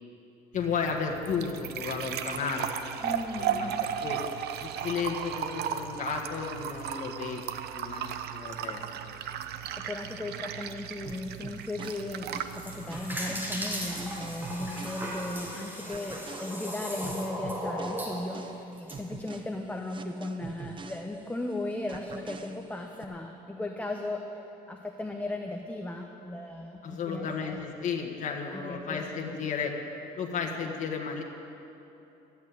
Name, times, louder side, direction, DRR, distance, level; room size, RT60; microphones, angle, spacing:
voice 1, 0.5-2.8 3.4-4.2 4.6-7.4 7.7-9.2 26.8-29.7 30.2-31.2, left 6 dB, 45° left, 1 dB, 1.6 m, -33 dB
sound 1, 0.5-15.5, right 9 dB, 75° right, 0.8 m, -36 dB
voice 2, 3.0-3.9 9.6-24.2 24.7-27.6 28.5-29.4, left 2 dB, 10° left, 2 dB, 0.9 m, -36 dB
sound 2, 11.0-15.5 15.9-21.5 21.9-23.0, right 5 dB, 30° right, 0.8 m, -46 dB
sound 3, 12.3-19.0, equal, 10° right, 3.1 m, -37 dB
13.5 x 8.5 x 9.4 m, 2.9 s
cardioid pair, 110°, 17 cm